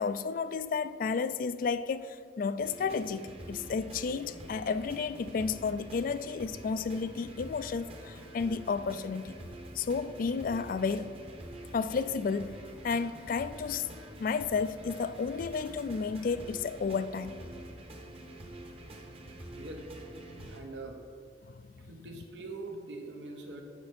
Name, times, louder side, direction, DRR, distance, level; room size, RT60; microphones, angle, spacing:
voice 1, 0.0-9.4 9.7-11.1 11.7-12.5 12.8-13.9 14.2-17.3 21.5-21.9, left 5 dB, 50° left, 0.3 m, -32 dB
sound 1, 2.6-20.6, right 1 dB, 35° right, 1.0 m, -46 dB
voice 2, 19.5-19.8 20.4-21.0 21.8-23.6, right 2 dB, 85° right, 1.1 m, -43 dB
8.8 x 6.3 x 4.3 m
head